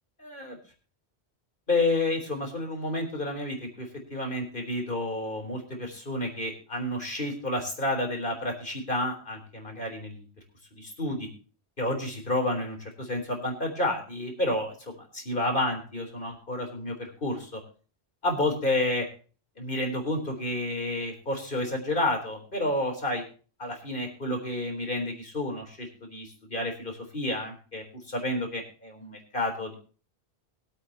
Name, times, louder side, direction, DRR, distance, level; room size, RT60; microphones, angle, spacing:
voice 1, 0.2-0.6 1.7-10.3 10.7-11.3 11.8-17.6 18.2-19.1 19.6-23.2 23.6-29.8, left 1 dB, 50° left, 3 dB, 4.1 m, -30 dB
23.0 x 8.5 x 2.9 m, 0.38 s
omnidirectional pair, 1.1 m